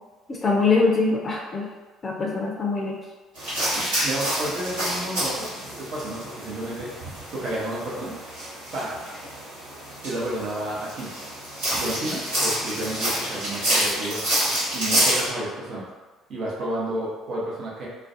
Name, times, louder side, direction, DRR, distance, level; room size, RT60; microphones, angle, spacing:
voice 1, 0.3-1.7 2.0-3.0, left 4 dB, 35° left, -1 dB, 0.4 m, -23 dB
sound 1, 3.3-15.3, right 1 dB, 75° right, 1.1 m, -28 dB
voice 2, 4.0-6.9 7.3-8.2 8.7-8.9 10.0-11.1 11.7-14.2 14.7-15.8 16.3-17.9, right 1 dB, 50° right, -5 dB, 0.7 m, -31 dB
2.4 x 2.1 x 2.5 m, 1.2 s
figure-of-eight pair, 50°, 0 cm